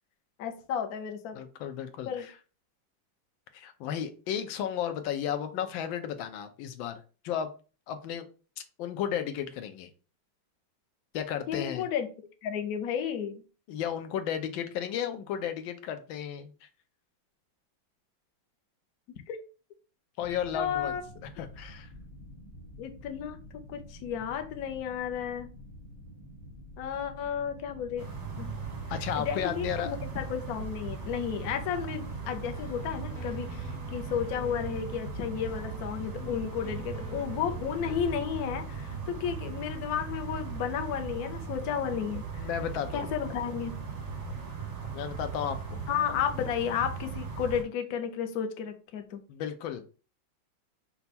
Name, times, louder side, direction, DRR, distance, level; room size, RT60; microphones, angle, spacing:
voice 1, 0.4-1.4 2.1-2.3 11.5-12.1 12.4-13.4 19.3-19.4 20.5-21.0 22.8-23.4 23.7-25.5 26.8-28.1 28.4-28.5 29.2-42.5 42.9-43.7 45.9-49.2, left 8 dB, 65° left, 6 dB, 1.0 m, -33 dB
voice 2, 1.3-2.3 3.5-7.5 7.9-8.3 8.8-9.9 11.1-11.9 13.7-16.7 20.2-20.9 21.4-21.9 28.9-29.9 36.2-36.3 42.4-43.0 44.9-45.8 49.3-49.8, left 9 dB, 85° left, 8 dB, 1.4 m, -34 dB
sound 1, 20.2-38.5, left 1 dB, 25° left, 0.6 m, -49 dB
sound 2, 28.0-47.6, right 5 dB, 35° right, 0.7 m, -38 dB
sound 3, 32.2-38.7, right 1 dB, 45° left, 1.6 m, -47 dB
5.6 x 2.3 x 4.1 m, 0.35 s
omnidirectional pair, 2.1 m